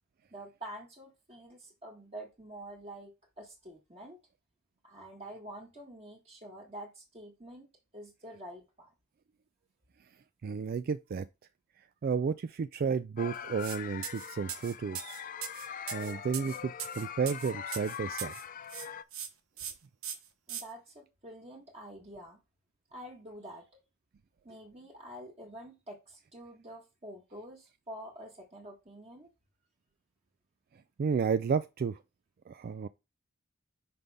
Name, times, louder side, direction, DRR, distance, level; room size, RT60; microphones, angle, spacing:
voice 1, 0.3-4.2 4.8-7.7 7.9-8.9 20.5-22.4 22.9-23.6 24.4-29.3, right 1 dB, 30° right, 1.7 m, -47 dB
voice 2, 10.4-11.3 12.0-15.2 15.5-18.4 31.0-32.0 32.5-32.9, right 6 dB, 45° right, 0.3 m, -32 dB
sound 1, 13.2-19.0, left 8 dB, 40° left, 0.4 m, -42 dB
sound 2, 13.6-13.8 14.0-18.4 18.7-19.3 19.6-19.7 20.0-20.6, right 9 dB, 90° right, 1.1 m, -40 dB
5.8 x 5.2 x 3.5 m
head